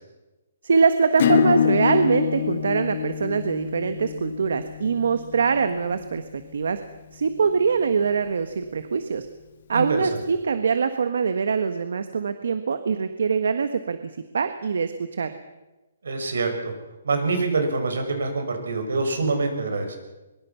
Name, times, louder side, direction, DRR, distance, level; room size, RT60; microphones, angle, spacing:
voice 1, 0.6-6.8 7.1-9.3 9.7-14.0 14.3-15.3, right 5 dB, 65° right, 9 dB, 1.5 m, -23 dB
Acoustic guitar / Strum, 1.2-6.4, left 8 dB, 40° left, 2.1 m, -26 dB
voice 2, 9.7-10.1 16.0-16.7 17.0-20.0, right 3 dB, 85° right, 5 dB, 6.6 m, -25 dB
23.0 x 23.0 x 6.0 m, 1.1 s
hypercardioid pair, 175°, 0 cm